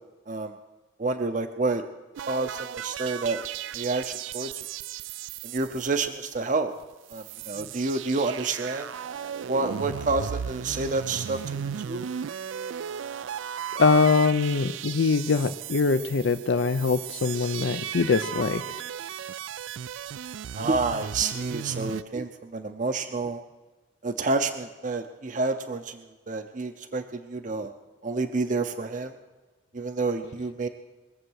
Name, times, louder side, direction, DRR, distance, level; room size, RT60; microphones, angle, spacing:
voice 1, 1.0-1.8 2.3-3.4 3.7-4.5 5.4-6.7 7.1-8.9 9.5-12.1 20.5-23.4 24.0-27.7 28.0-29.1 29.7-30.7, right 3 dB, 45° right, 7 dB, 0.7 m, -29 dB
sound 1, 2.1-6.5 6.8-6.9 7.1-22.0, right 8 dB, 80° right, 0.4 m, -36 dB
voice 2, 13.8-18.6, left 4 dB, 70° left, 10 dB, 0.5 m, -23 dB
22.0 x 7.7 x 6.3 m, 1.2 s
head